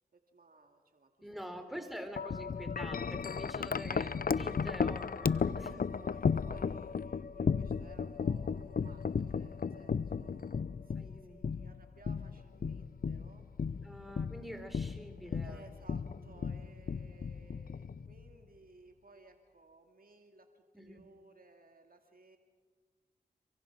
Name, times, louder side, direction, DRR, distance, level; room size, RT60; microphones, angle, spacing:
voice 1, 0.0-2.0 4.4-4.6 5.4-13.5 13.8-14.1 15.4-22.4, right 2 dB, 55° right, 4 dB, 2.3 m, -59 dB
voice 2, 1.2-5.8 11.0-11.5 13.8-15.7 16.0-16.4 20.7-21.1, equal, ahead, 6 dB, 3.8 m, -46 dB
Wind chime, 2.2-18.3, left 6 dB, 55° left, 0.6 m, -35 dB
27.0 x 24.5 x 6.2 m, 1.4 s
cardioid pair, 45°, 18 cm